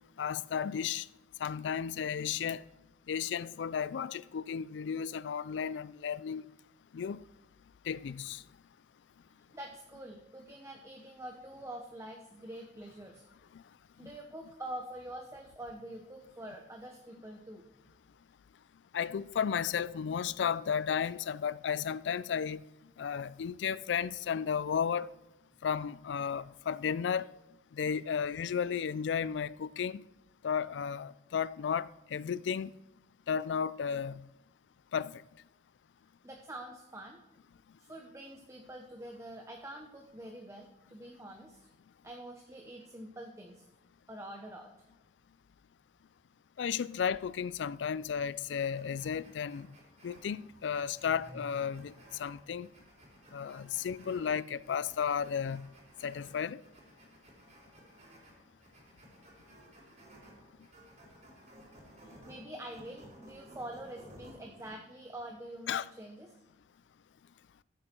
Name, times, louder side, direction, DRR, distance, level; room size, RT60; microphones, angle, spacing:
voice 1, 0.2-1.1 1.4-2.6 3.1-6.5 6.9-7.2 7.9-8.4 13.5-13.6 14.0-14.1 18.9-22.6 23.0-25.1 25.6-27.3 27.7-30.0 30.4-32.7 33.3-34.3 34.9-35.2 46.6-49.7 50.0-51.9 52.2-52.7 53.3-55.7 56.0-56.6 65.7-65.9, left 7 dB, 90° left, 0.4 m, -33 dB
voice 2, 9.3-13.2 13.9-17.7 36.2-37.2 37.8-41.6 42.0-43.6 44.1-44.7 51.1-51.6 53.9-54.2 62.0-66.3, right 1 dB, 15° right, 0.9 m, -46 dB
sound 1, 48.7-64.7, right 1 dB, 40° right, 3.9 m, -57 dB
14.0 x 8.4 x 4.4 m
head